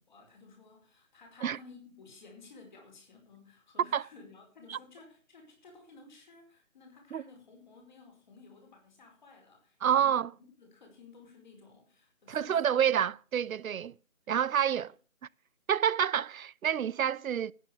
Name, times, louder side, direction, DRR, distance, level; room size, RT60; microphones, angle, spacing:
voice 1, 0.1-10.2 10.6-12.9 13.6-13.9 14.5-14.9, left 4 dB, 35° left, 4.8 m, -55 dB
voice 2, 9.8-10.3 12.3-13.9 14.3-14.9 15.7-17.5, right 9 dB, 80° right, 0.6 m, -28 dB
14.0 x 9.3 x 6.9 m
hypercardioid pair, 170°, 41 cm